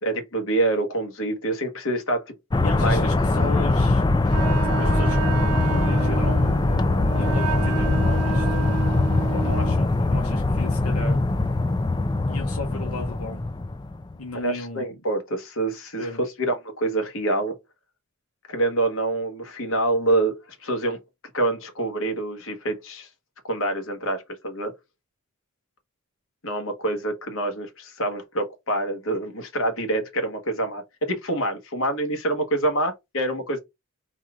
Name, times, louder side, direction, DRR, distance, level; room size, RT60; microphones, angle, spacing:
voice 1, 0.0-2.3 2.8-3.1 14.3-16.1 16.4-17.6 18.5-21.0 21.3-23.1 23.5-24.7 26.4-33.6, right 2 dB, 70° left, 1.3 m, -26 dB
sound 1, 2.5-14.1, left 2 dB, 20° left, 0.4 m, -22 dB
voice 2, 2.6-4.0 4.6-5.2 5.6-6.4 7.1-8.6 9.3-11.2 12.3-13.5 14.2-15.0 16.0-16.2, left 2 dB, 85° left, 1.0 m, -35 dB
Wind instrument woodwind instrument, 4.3-9.8, right 9 dB, 85° right, 0.5 m, -31 dB
4.1 x 2.5 x 4.5 m
head